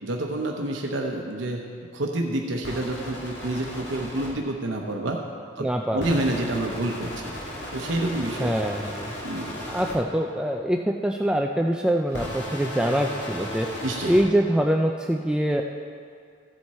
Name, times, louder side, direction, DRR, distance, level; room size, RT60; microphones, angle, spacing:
voice 1, 0.0-1.6 1.9-5.2 5.6-5.7 5.9-7.3 7.7-8.5 9.2-9.6 13.8-14.1, right 1 dB, 80° right, 1 dB, 0.9 m, -28 dB
sound 1, 2.6-4.3 6.0-9.9 12.1-14.2, left 1 dB, 65° left, 2.1 m, -35 dB
voice 2, 5.6-6.1 8.4-9.1 9.7-13.7 14.0-15.6, equal, 5° right, 2 dB, 0.3 m, -24 dB
14.5 x 7.9 x 4.2 m, 2.2 s
head